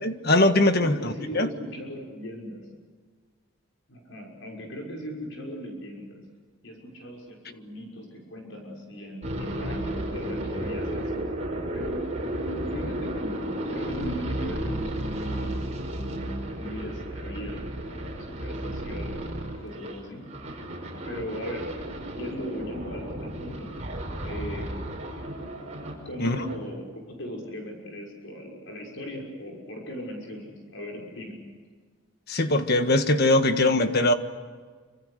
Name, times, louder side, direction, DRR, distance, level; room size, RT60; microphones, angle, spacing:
voice 1, 0.0-1.5 26.2-26.4 32.3-34.1, left 1 dB, 45° left, 8 dB, 1.7 m, -21 dB
voice 2, 0.8-2.6 3.9-6.2 6.6-11.2 11.7-12.0 12.3-13.4 13.7-15.6 16.5-20.3 21.1-21.7 22.1-23.7 24.2-24.7 26.0-31.3, equal, 65° left, 0 dB, 6.3 m, -38 dB
sound 1, 9.2-26.0 26.3-26.6, right 1 dB, 30° right, 5.4 m, -33 dB
27.0 x 26.0 x 6.7 m, 1.5 s
head